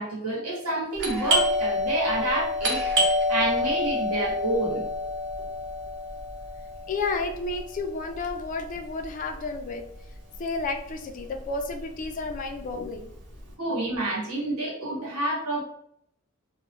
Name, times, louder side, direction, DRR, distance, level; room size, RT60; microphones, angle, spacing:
voice 1, 0.0-2.8 3.3-4.8 13.6-15.6, right 2 dB, 80° right, -4 dB, 1.1 m, -28 dB
Doorbell, 1.0-10.4 10.6-10.7 11.4-11.7 12.0-13.4, left 1 dB, 55° right, 0.6 m, -28 dB
voice 2, 6.9-9.8 10.4-13.1, left 3 dB, 35° left, 4 dB, 0.3 m, -31 dB
2.4 x 2.1 x 2.9 m, 0.72 s
head